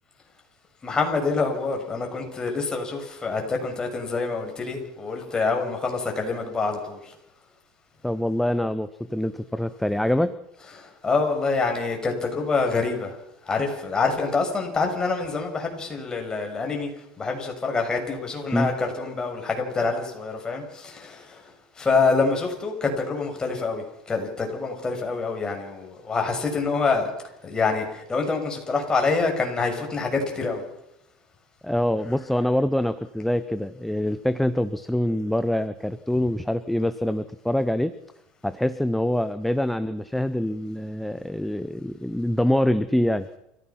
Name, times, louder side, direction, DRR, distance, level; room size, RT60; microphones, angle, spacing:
voice 1, 0.8-7.1 10.8-13.2 13.4-16.9 17.2-27.1 27.4-30.6, left 4 dB, 20° left, 2 dB, 6.5 m, -26 dB
voice 2, 8.0-10.4 18.5-18.7 31.6-37.9 38.4-43.3, left 1 dB, 5° left, 12 dB, 0.8 m, -25 dB
28.5 x 15.5 x 6.0 m, 0.82 s
supercardioid pair, 105°, 3 cm